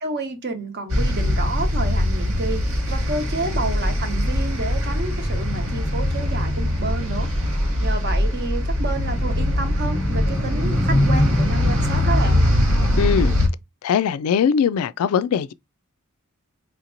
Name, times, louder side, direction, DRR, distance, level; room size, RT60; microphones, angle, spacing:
voice 1, 0.0-2.6 2.9-7.3 7.8-12.4, right 2 dB, 50° right, 1.0 m, -30 dB
sound 1, 0.9-13.5, left 1 dB, 80° right, 1.9 m, -21 dB
voice 2, 13.0-13.3 13.8-15.5, left 7 dB, 75° left, 0.3 m, -20 dB
4.6 x 2.9 x 2.5 m
head